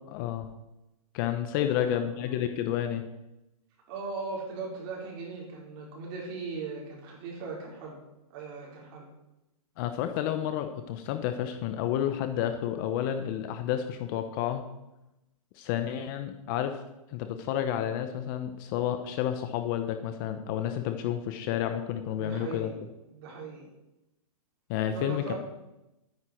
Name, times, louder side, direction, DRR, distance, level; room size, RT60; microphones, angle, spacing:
voice 1, 0.1-0.5 1.1-3.0 9.8-14.6 15.5-16.8 17.1-22.7 24.7-25.3, left 10 dB, 35° left, 8 dB, 0.9 m, -30 dB
voice 2, 1.6-2.3 3.9-8.0 8.3-9.1 22.2-22.7 23.1-23.7 24.9-25.4, right 4 dB, 40° right, -2 dB, 4.6 m, -39 dB
12.5 x 9.8 x 4.6 m, 0.93 s
hypercardioid pair, 150°, 19 cm